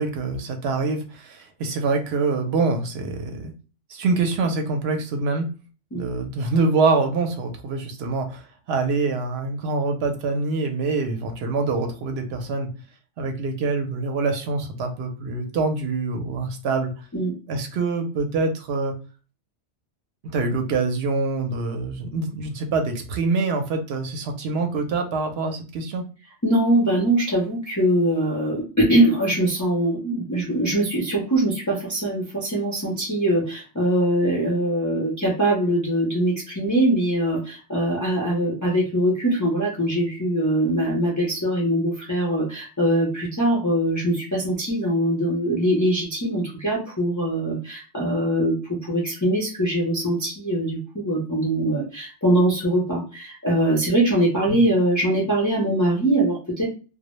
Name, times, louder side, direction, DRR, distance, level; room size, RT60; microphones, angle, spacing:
voice 1, 0.0-3.5 3.9-5.5 5.9-8.4 8.7-12.7 13.2-16.9 17.5-18.9 20.2-26.0 54.5-54.6, right 3 dB, 65° right, 4 dB, 0.7 m, -25 dB
voice 2, 26.4-56.7, right 1 dB, 25° left, -5 dB, 0.3 m, -22 dB
2.1 x 2.0 x 2.9 m, 0.35 s
omnidirectional pair, 1.2 m